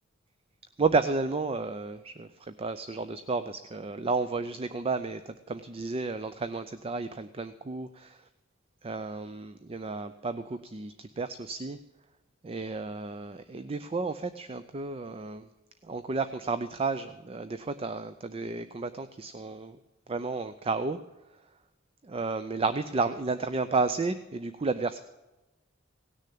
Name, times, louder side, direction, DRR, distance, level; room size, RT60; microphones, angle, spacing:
voice 1, 0.8-8.3 8.8-11.8 12.4-15.5 15.8-19.8 20.1-21.0 22.0-25.0, right 3 dB, 30° right, 12 dB, 0.5 m, -32 dB
17.5 x 6.6 x 8.4 m, 1.0 s
head